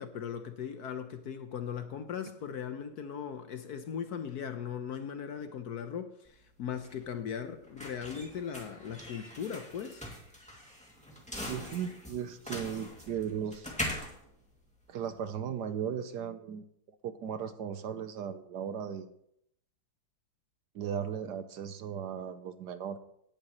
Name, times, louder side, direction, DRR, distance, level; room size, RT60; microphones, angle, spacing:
voice 1, 0.0-10.1, left 7 dB, 65° left, 1.1 m, -38 dB
sound 1, 6.3-15.3, left 1 dB, 5° left, 2.1 m, -42 dB
voice 2, 11.4-13.7 14.9-16.7 17.0-19.1 20.7-23.0, right 8 dB, 65° right, 1.2 m, -36 dB
17.5 x 10.5 x 3.1 m
omnidirectional pair, 2.1 m